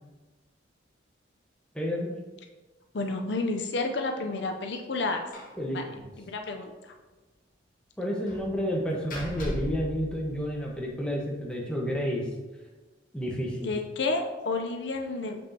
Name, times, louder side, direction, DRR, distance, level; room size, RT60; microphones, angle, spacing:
voice 1, 1.7-2.1 5.6-6.1 8.0-12.2 13.1-13.7, equal, 5° left, -3 dB, 1.1 m, -30 dB
voice 2, 2.9-5.3 5.7-5.8 6.3-6.9 13.6-15.4, left 3 dB, 65° left, 4 dB, 0.6 m, -30 dB
Slam, 5.3-5.6 5.9-6.0 6.4-6.5 8.3-10.9, equal, 45° left, 1.2 m, -38 dB
7.1 x 6.1 x 2.8 m, 1.2 s
head